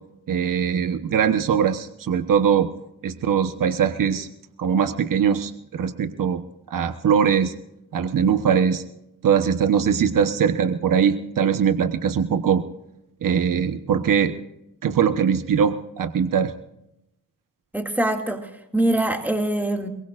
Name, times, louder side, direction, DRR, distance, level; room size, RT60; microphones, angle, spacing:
voice 1, 0.3-2.7 3.0-4.3 4.6-6.4 6.7-7.5 7.9-8.8 9.2-12.6 13.2-14.4 14.8-16.5, right 7 dB, 75° right, 8 dB, 1.2 m, -21 dB
voice 2, 17.7-19.9, right 1 dB, 5° right, 2 dB, 2.4 m, -23 dB
23.0 x 21.5 x 2.5 m, 0.85 s
wide cardioid pair, 90°, 33 cm